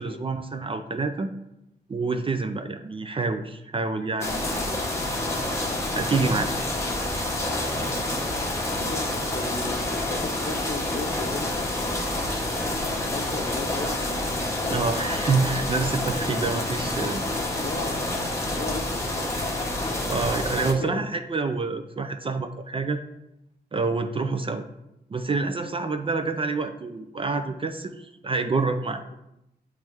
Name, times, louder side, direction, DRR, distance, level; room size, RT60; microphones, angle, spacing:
voice 1, 0.0-1.3 1.9-4.8 5.9-6.5 14.6-17.3 20.1-23.0 23.7-24.6 25.1-29.0, right 4 dB, 30° right, 7 dB, 0.4 m, -27 dB
sound 1, 4.2-20.7, left 1 dB, 15° left, 0.9 m, -28 dB
voice 2, 8.7-12.5 12.9-14.1 17.2-19.3 20.8-21.0 24.3-24.5 29.1-29.2, left 3 dB, 45° left, 5 dB, 0.7 m, -37 dB
8.8 x 3.1 x 3.5 m, 0.87 s
wide cardioid pair, 135°, 18 cm